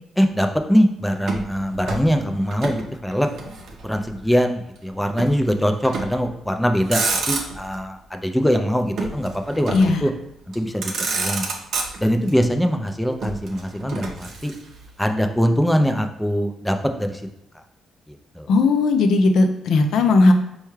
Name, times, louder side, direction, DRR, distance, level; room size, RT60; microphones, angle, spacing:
voice 1, 0.2-3.3 3.8-10.1 10.5-10.9 11.2-11.5 12.0-14.5 15.0-17.3 18.1-18.5, equal, 5° left, 5 dB, 0.4 m, -22 dB
Motor vehicle (road), 1.2-2.8 3.1-4.2 5.2-5.4 5.8-6.3 6.7-7.8 9.0-10.0 10.5-10.6 10.8-12.3 13.2-14.8, right 4 dB, 65° right, 0.6 m, -28 dB
voice 2, 18.5-20.3, left 3 dB, 75° left, 6 dB, 0.4 m, -16 dB
4.4 x 2.3 x 3.1 m, 0.84 s
cardioid pair, 90°, 0 cm